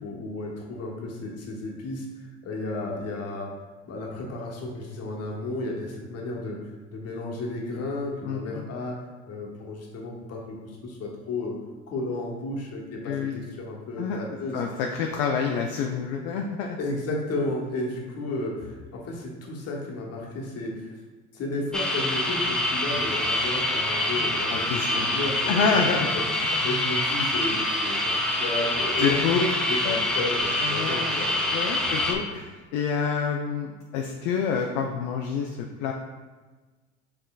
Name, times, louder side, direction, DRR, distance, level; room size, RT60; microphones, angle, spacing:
voice 1, 0.0-3.5 3.9-6.6 6.9-9.0 9.3-11.6 11.9-14.6 16.8-20.9 21.3-25.7 26.0-26.2 26.6-31.5 32.2-32.3, left 2 dB, 45° left, -1 dB, 1.1 m, -33 dB
voice 2, 8.2-8.6 13.0-13.4 14.0-14.2 14.5-16.8 24.5-25.1 25.5-26.1 29.0-29.4 29.8-30.0 30.6-31.2 31.5-35.9, left 6 dB, 65° left, 1 dB, 0.5 m, -27 dB
sound 1, 21.7-32.1, left 1 dB, ahead, 0.5 m, -26 dB
5.5 x 3.7 x 2.3 m, 1.3 s
hypercardioid pair, 70°, 34 cm